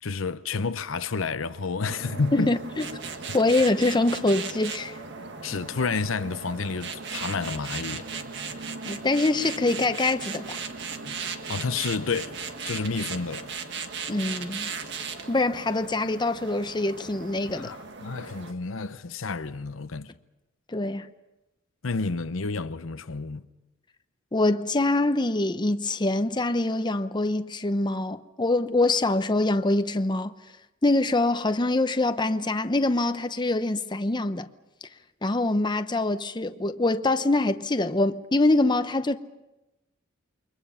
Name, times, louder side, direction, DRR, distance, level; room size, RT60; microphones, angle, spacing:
voice 1, 0.0-2.6 5.4-8.1 11.0-12.4 12.6-13.5 17.5-20.1 21.8-23.4, left 4 dB, 90° left, 0.8 m, -30 dB
sound 1, 1.9-18.5, right 5 dB, 60° right, 1.7 m, -37 dB
voice 2, 2.3-2.9 3.3-5.0 8.9-10.6 14.1-14.7 15.3-17.7 20.7-21.1 24.3-30.3 30.8-34.5 35.2-39.2, left 2 dB, 25° left, 0.8 m, -24 dB
29.0 x 23.5 x 5.7 m
head